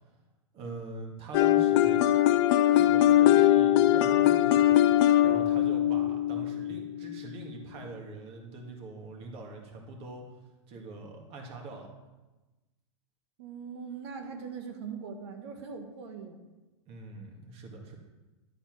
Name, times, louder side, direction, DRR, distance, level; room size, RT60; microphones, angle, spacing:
voice 1, 0.5-2.0 2.7-10.2 10.7-11.9 16.9-18.0, right 2 dB, 40° right, 1 dB, 1.9 m, -43 dB
sound 1, 1.3-7.2, left 12 dB, 50° left, 0.5 m, -22 dB
voice 2, 13.4-16.4, right 6 dB, 65° right, 5 dB, 1.5 m, -41 dB
11.0 x 4.4 x 5.9 m, 1.1 s
hypercardioid pair, 125°, 15 cm